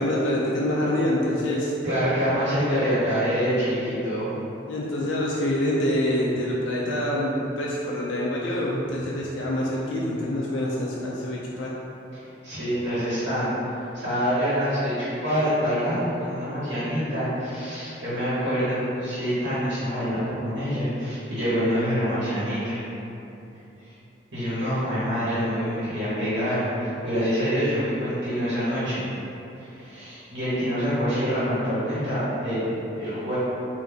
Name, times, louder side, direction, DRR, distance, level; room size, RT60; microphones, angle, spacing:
voice 1, 0.0-1.7 2.7-2.9 4.7-11.7, left 1 dB, 80° left, -4 dB, 0.4 m, -26 dB
voice 2, 1.8-4.3 12.1-13.5 13.9-22.8 23.8-23.9 24.3-29.0 29.6-32.6 33.0-33.4, equal, 70° right, -13 dB, 1.3 m, -26 dB
3.8 x 2.6 x 3.5 m, 2.9 s
head